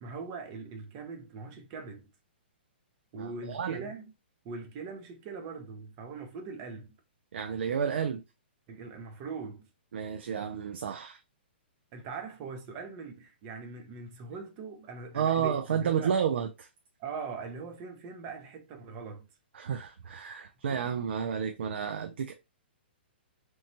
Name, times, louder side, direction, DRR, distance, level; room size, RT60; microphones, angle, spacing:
voice 1, 0.0-2.1 3.1-4.1 4.4-6.9 8.7-9.7 11.9-16.2 17.0-19.3, right 4 dB, 25° right, 0.6 m, -41 dB
voice 2, 3.2-3.8 7.3-8.2 9.9-11.2 15.1-16.7 19.5-22.3, right 7 dB, 75° right, 0.4 m, -31 dB
3.0 x 2.2 x 2.7 m
hypercardioid pair, 160°, 6 cm